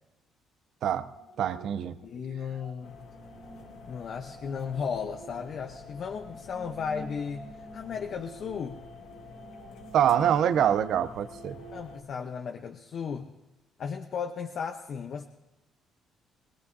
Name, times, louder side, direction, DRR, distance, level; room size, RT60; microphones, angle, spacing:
sound 1, 0.9-12.1, right 3 dB, 90° right, 2.7 m, -50 dB
voice 1, 1.4-2.0 9.9-11.6, right 9 dB, 65° right, 13 dB, 0.6 m, -25 dB
voice 2, 2.0-3.0 3.9-8.8 11.7-13.3 13.8-15.2, left 6 dB, 55° left, 4 dB, 0.9 m, -35 dB
sound 2, 2.8-12.0, left 4 dB, 80° left, 1.9 m, -48 dB
21.5 x 19.0 x 2.7 m, 1.0 s
cardioid pair, 95°, 0 cm